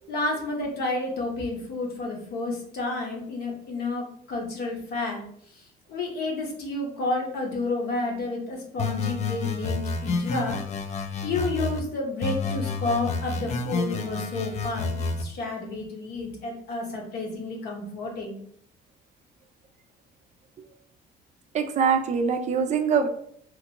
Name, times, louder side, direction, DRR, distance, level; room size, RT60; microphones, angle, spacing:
voice 1, 0.1-5.2 5.9-10.6 11.2-18.4, left 2 dB, 70° left, 0 dB, 0.9 m, -30 dB
sound 1, 8.8-11.8 12.2-15.2, left 4 dB, 45° left, 0.4 m, -29 dB
voice 2, 21.5-23.1, right 6 dB, 45° right, 7 dB, 0.4 m, -23 dB
2.9 x 2.4 x 2.8 m, 0.64 s
cardioid pair, 110°, 17 cm